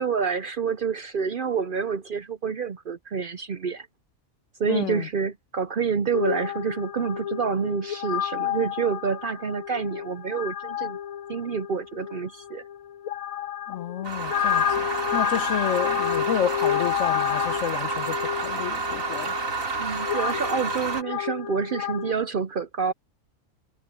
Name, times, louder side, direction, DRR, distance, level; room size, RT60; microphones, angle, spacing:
voice 1, 0.0-3.9 4.6-11.0 11.3-12.6 19.8-22.9, right 6 dB, 55° right, 0.6 m, -28 dB
voice 2, 4.7-5.1 13.7-19.3, left 9 dB, 70° left, 1.1 m, -30 dB
sound 1, 6.1-22.1, left 10 dB, 85° left, 1.3 m, -30 dB
sound 2, 14.0-21.0, right 4 dB, 75° right, 2.8 m, -30 dB
omnidirectional pair, 1.4 m